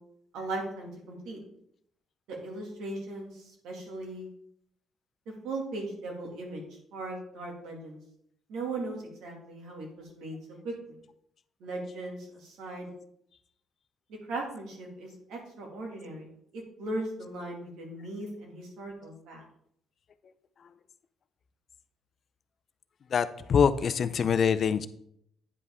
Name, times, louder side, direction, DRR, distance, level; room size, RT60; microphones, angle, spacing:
voice 1, 0.3-1.4 2.3-4.3 5.4-6.6 6.9-8.0 8.5-9.9 10.2-10.4 10.6-10.9 11.6-12.9 14.3-16.3 16.5-19.4, right 2 dB, 85° right, 0 dB, 2.3 m, -38 dB
voice 2, 23.1-24.9, left 7 dB, 45° left, 13 dB, 0.5 m, -24 dB
9.5 x 5.4 x 3.6 m, 0.71 s
cardioid pair, 120°, 0 cm